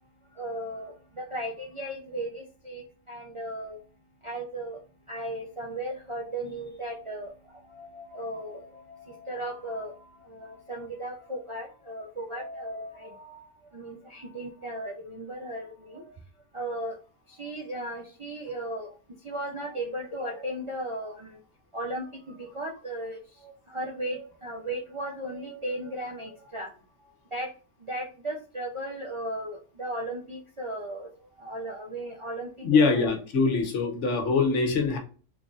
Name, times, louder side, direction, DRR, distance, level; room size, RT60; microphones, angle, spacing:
voice 1, 0.3-3.8 4.2-4.8 5.1-16.1 16.5-17.0 17.3-19.0 19.2-21.4 21.7-26.8 27.3-27.5 27.9-33.2, right 1 dB, 45° right, -1 dB, 0.4 m, -36 dB
voice 2, 32.6-35.0, left 4 dB, 75° left, 4 dB, 1.2 m, -23 dB
3.9 x 3.3 x 2.4 m, 0.37 s
omnidirectional pair, 1.2 m